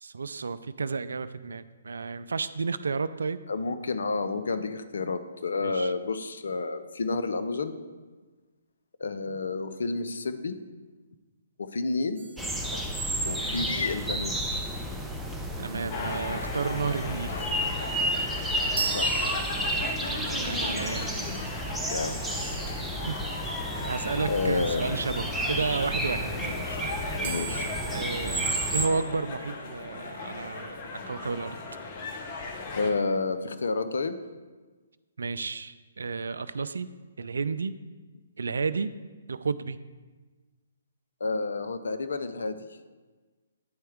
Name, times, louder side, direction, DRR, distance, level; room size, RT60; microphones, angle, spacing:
voice 1, 0.0-3.4 5.6-5.9 15.6-17.5 20.1-21.1 23.1-23.3 23.8-26.3 27.9-31.6 35.2-36.9 37.2-37.8 38.4-38.9 39.3-39.8, right 4 dB, 70° right, 14 dB, 0.3 m, -32 dB
voice 2, 3.5-7.8 9.0-10.6 11.6-12.2 12.7-12.8 13.2-14.6 18.9-19.3 20.6-21.2 21.9-22.6 24.3-24.9 26.3-26.9 27.2-27.7 32.7-34.2 41.2-42.7, left 3 dB, 65° left, 10 dB, 0.5 m, -30 dB
sound 1, 12.2-13.5 18.8-20.2 27.2-29.4, right 6 dB, 50° right, 0.8 m, -38 dB
sound 2, 12.4-28.9, right 1 dB, 5° right, 0.5 m, -31 dB
sound 3, 15.9-32.9, left 3 dB, 35° left, 0.9 m, -37 dB
9.5 x 4.3 x 3.6 m, 1.3 s
figure-of-eight pair, 135°, 0 cm